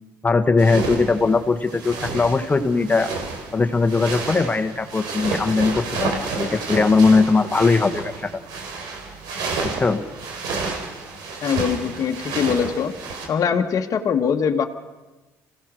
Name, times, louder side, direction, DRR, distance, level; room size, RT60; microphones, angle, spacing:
voice 1, 0.2-3.1 3.5-8.3 9.6-10.0, left 4 dB, 25° left, 8 dB, 1.7 m, -19 dB
sound 1, 0.6-13.3, right 3 dB, 75° right, 3.9 m, -30 dB
voice 2, 11.4-12.9 13.3-14.6, left 7 dB, 50° left, 4 dB, 1.5 m, -22 dB
26.5 x 16.5 x 6.4 m, 1.2 s
supercardioid pair, 65°, 7 cm